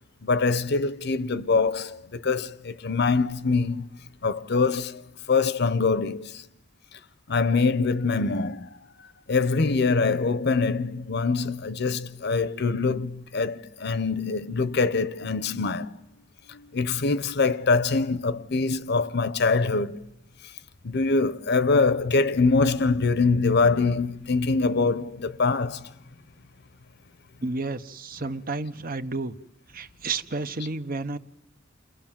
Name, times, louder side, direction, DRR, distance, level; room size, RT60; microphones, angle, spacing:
voice 1, 0.2-4.0 4.2-6.4 7.3-16.0 16.5-20.0 20.8-25.9, left 4 dB, 60° left, 0.8 m, -24 dB
voice 2, 27.4-29.3 29.7-31.2, right 3 dB, 45° right, 0.9 m, -31 dB
29.5 x 22.0 x 7.4 m
head